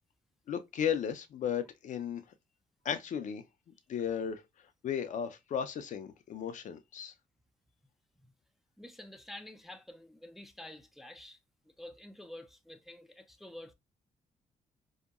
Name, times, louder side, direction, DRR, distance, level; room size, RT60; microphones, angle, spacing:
voice 1, 0.5-2.2 2.8-3.4 3.9-4.4 4.8-7.1, left 8 dB, 60° left, 0.4 m, -35 dB
voice 2, 8.8-11.4 11.7-13.7, left 1 dB, ahead, 0.4 m, -49 dB
2.7 x 2.2 x 2.2 m
cardioid pair, 75°, 15 cm